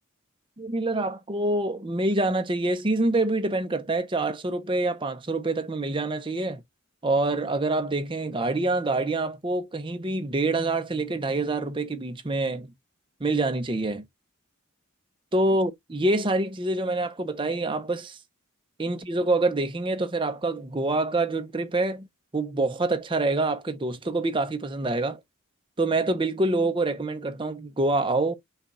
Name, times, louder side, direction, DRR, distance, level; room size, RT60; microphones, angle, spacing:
voice 1, 0.6-6.6 7.0-12.7 13.2-14.0 15.3-18.2 18.8-22.1 22.3-25.2 25.8-28.3, right 2 dB, 25° right, 0.6 m, -26 dB
5.6 x 2.3 x 3.9 m
head